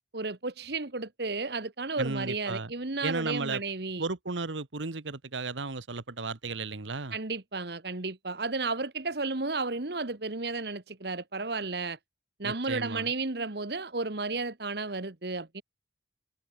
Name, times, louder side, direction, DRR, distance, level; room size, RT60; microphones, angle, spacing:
voice 1, 0.1-4.0 7.1-12.0 12.4-15.6, right 3 dB, 60° right, 1.4 m, -33 dB
voice 2, 2.0-2.7 3.0-3.6 4.0-7.2 12.4-13.1, right 3 dB, 85° right, 1.3 m, -34 dB
head